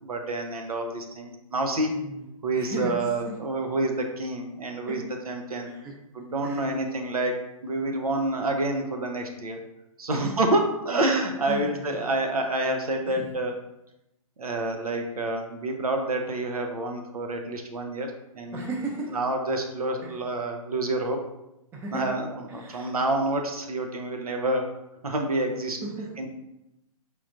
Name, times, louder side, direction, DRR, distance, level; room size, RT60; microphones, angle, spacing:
voice 1, 0.0-1.9 2.4-5.7 6.1-9.6 10.0-13.5 14.4-18.1 18.3-18.6 19.1-21.2 21.9-24.6 25.0-25.8 26.2-26.3, right 2 dB, 80° right, 3 dB, 0.8 m, -28 dB
voice 2, 1.9-2.2 2.5-3.4 4.9-5.0 5.6-5.9 6.4-6.7 10.1-10.3 11.5-12.1 13.1-13.3 18.5-19.2 20.0-20.2 21.7-22.2 22.5-22.9 25.5-26.1, right 3 dB, 10° right, 0 dB, 0.5 m, -36 dB
4.9 x 3.3 x 2.5 m, 0.89 s
hypercardioid pair, 135°, 19 cm